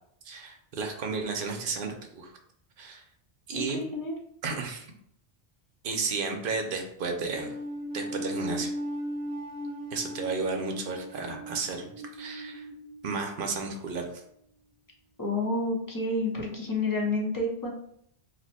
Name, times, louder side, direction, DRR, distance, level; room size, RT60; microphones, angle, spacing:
voice 1, 0.2-2.3 2.8-3.0 3.5-3.8 4.4-4.9 5.8-7.5 7.9-8.7 9.9-12.7 13.0-14.2, right 4 dB, 60° right, 3 dB, 0.7 m, -33 dB
voice 2, 3.5-4.2 15.2-17.7, left 2 dB, 25° left, -2 dB, 0.6 m, -29 dB
sound 1, 7.3-13.7, equal, 25° right, 0.6 m, -37 dB
2.8 x 2.1 x 4.1 m, 0.70 s
omnidirectional pair, 1.1 m